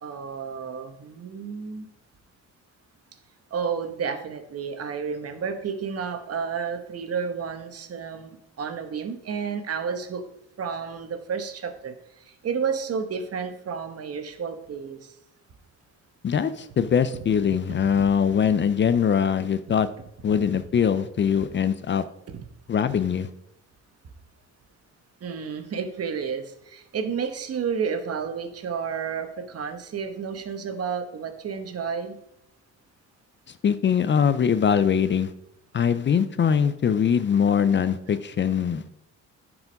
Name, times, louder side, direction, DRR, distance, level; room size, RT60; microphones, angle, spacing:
voice 1, 0.0-1.9 3.5-10.2 10.6-15.1 17.9-18.1 22.3-22.4 25.2-32.2, right 6 dB, 55° right, 8 dB, 1.2 m, -31 dB
voice 2, 16.2-19.9 20.2-22.0 22.7-23.3 33.6-35.3 35.7-38.9, left 7 dB, 40° left, 14 dB, 0.5 m, -22 dB
9.6 x 4.9 x 5.3 m, 0.80 s
cardioid pair, 90°, 30 cm